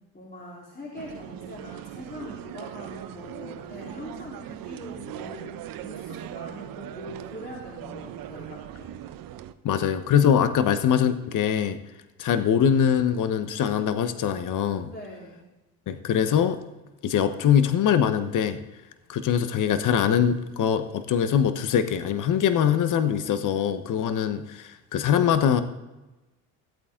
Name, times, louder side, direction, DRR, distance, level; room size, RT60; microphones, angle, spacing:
voice 1, 0.1-8.9 14.8-15.4, equal, 25° left, -5 dB, 3.7 m, -42 dB
sound 1, 1.0-9.5, right 11 dB, 60° right, 0.8 m, -40 dB
voice 2, 9.6-11.8 12.2-14.9 15.9-16.6 17.0-18.6 19.1-25.6, left 8 dB, 50° left, 11 dB, 1.1 m, -23 dB
15.0 x 8.4 x 3.8 m, 1.1 s
supercardioid pair, 75°, 39 cm